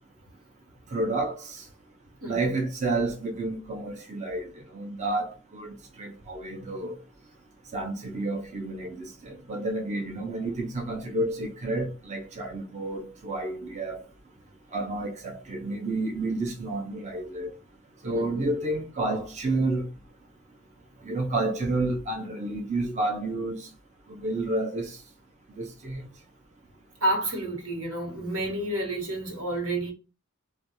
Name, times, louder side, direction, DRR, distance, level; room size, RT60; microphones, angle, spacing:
voice 1, 0.9-1.6 2.3-4.5 4.7-6.9 7.7-14.0 14.7-17.5 18.0-19.9 21.1-23.7 24.1-25.0 25.6-26.0, right 2 dB, 35° right, 0.5 m, -30 dB
voice 2, 2.2-2.6 18.1-18.5 27.0-29.9, right 1 dB, 85° right, 1.1 m, -30 dB
2.4 x 2.2 x 2.8 m
head